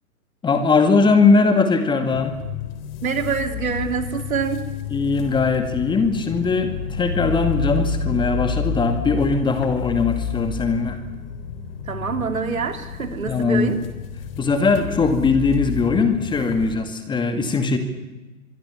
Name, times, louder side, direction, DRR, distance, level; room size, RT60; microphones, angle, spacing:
voice 1, 0.4-2.3 4.9-11.0 13.3-13.7 14.4-17.8, left 4 dB, 10° left, 7 dB, 2.2 m, -20 dB
sound 1, 2.1-16.8, left 6 dB, 40° left, 3.4 m, -30 dB
voice 2, 3.0-4.7 11.9-13.8, right 6 dB, 70° right, 7 dB, 3.6 m, -25 dB
25.0 x 23.5 x 7.3 m, 1.1 s
figure-of-eight pair, 120°, 43 cm